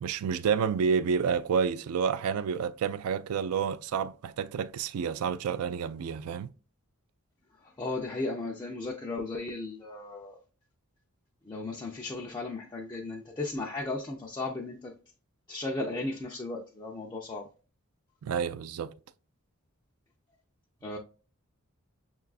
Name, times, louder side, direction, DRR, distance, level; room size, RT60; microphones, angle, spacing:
voice 1, 0.0-6.5 18.2-18.9, right 6 dB, 80° right, 0.3 m, -29 dB
voice 2, 7.8-10.4 11.4-14.9 15.5-17.5 20.8-21.0, left 2 dB, 20° left, 0.4 m, -35 dB
6.5 x 2.3 x 2.3 m
head